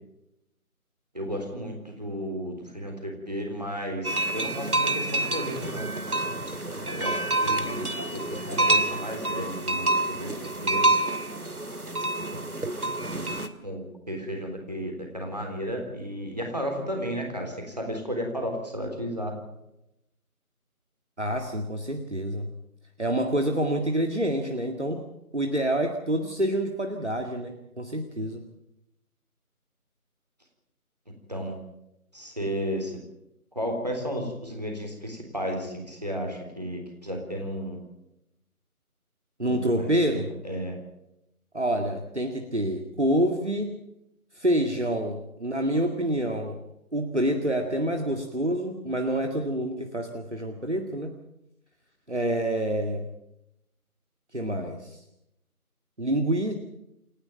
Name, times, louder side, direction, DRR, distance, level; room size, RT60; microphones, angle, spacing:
voice 1, 1.1-5.9 6.9-10.3 10.6-10.9 12.3-12.4 13.6-19.3 31.3-31.5 32.1-33.0 33.5-37.8 39.4-40.8, equal, 25° right, 2 dB, 3.6 m, -33 dB
sound 1, 4.0-13.5, right 2 dB, 75° right, 2.4 m, -27 dB
voice 2, 21.2-22.5 23.0-25.0 25.3-28.4 39.4-40.3 41.5-43.8 44.3-46.6 46.9-51.1 52.1-53.1 54.3-55.0 56.0-56.5, right 1 dB, 50° right, 3 dB, 2.2 m, -27 dB
28.5 x 11.5 x 9.0 m, 0.87 s
figure-of-eight pair, 175°, 45 cm